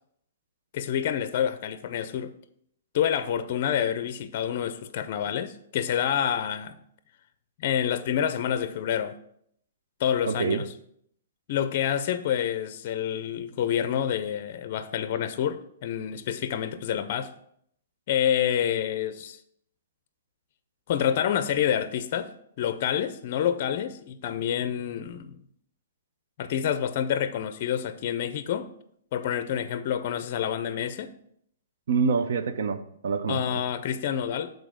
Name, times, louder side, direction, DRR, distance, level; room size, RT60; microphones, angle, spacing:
voice 1, 0.7-2.3 2.9-6.7 7.6-9.2 10.0-10.7 11.5-17.3 18.1-19.4 20.9-22.3 22.6-25.4 26.4-28.7 29.1-31.1 33.3-34.5, left 9 dB, 40° left, 0.5 m, -28 dB
voice 2, 10.2-10.6 31.9-33.6, right 5 dB, 65° right, 0.7 m, -26 dB
7.1 x 4.0 x 6.2 m
hypercardioid pair, 165°, 0 cm